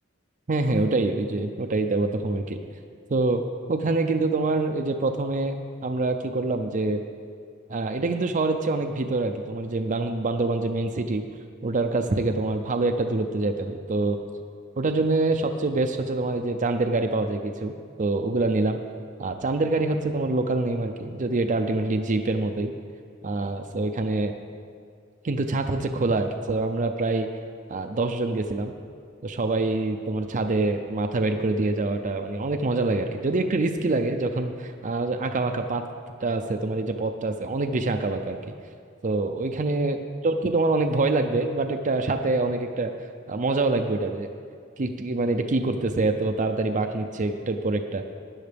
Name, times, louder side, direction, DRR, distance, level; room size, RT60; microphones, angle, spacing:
voice 1, 0.5-2.6 3.1-3.4 3.7-5.6 5.8-7.0 7.7-11.2 11.6-14.2 14.8-18.8 19.2-22.7 23.2-24.3 25.2-27.3 27.7-28.7 29.2-35.8 36.2-38.4 39.0-40.0 40.2-42.9 43.3-44.3 44.8-48.0, right 2 dB, 40° right, 5 dB, 0.5 m, -25 dB
16.0 x 10.0 x 3.4 m, 2.2 s
head